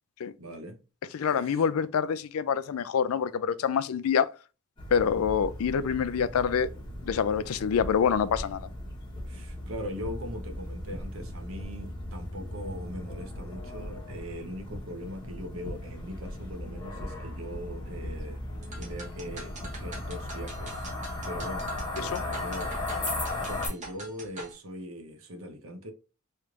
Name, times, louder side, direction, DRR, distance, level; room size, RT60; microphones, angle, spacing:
voice 1, 0.4-0.8 1.1-1.7 9.3-18.4 18.8-20.9 21.2-22.7 23.0-25.9, equal, 70° right, 0.9 m, -41 dB
voice 2, 1.1-4.3 4.9-6.7 7.0-8.7 22.0-22.2, left 7 dB, 80° left, 0.3 m, -26 dB
sound 1, 4.8-23.7, left 1 dB, 20° left, 1.0 m, -37 dB
sound 2, 18.6-24.5, right 2 dB, 35° right, 1.0 m, -44 dB
3.2 x 3.1 x 2.4 m
head